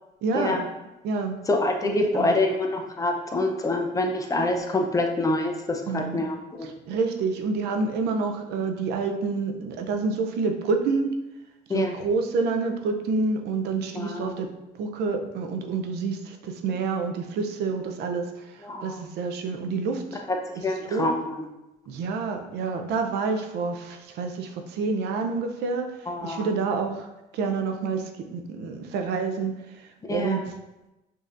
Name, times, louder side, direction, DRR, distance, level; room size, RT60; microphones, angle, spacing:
voice 1, 0.2-0.6 1.0-1.4 1.9-2.3 5.9-6.2 6.6-11.1 11.7-14.5 14.8-20.2 20.8-21.1 21.9-25.9 26.2-27.1 27.3-29.6 30.1-30.4, right 4 dB, 80° right, 5 dB, 0.5 m, -28 dB
voice 2, 1.5-6.7 11.7-11.9 13.9-14.3 18.6-19.0 20.6-21.4 26.1-26.5 30.1-30.4, left 2 dB, 20° left, 2 dB, 0.6 m, -26 dB
5.2 x 2.7 x 2.5 m, 0.97 s
cardioid pair, 110°, 17 cm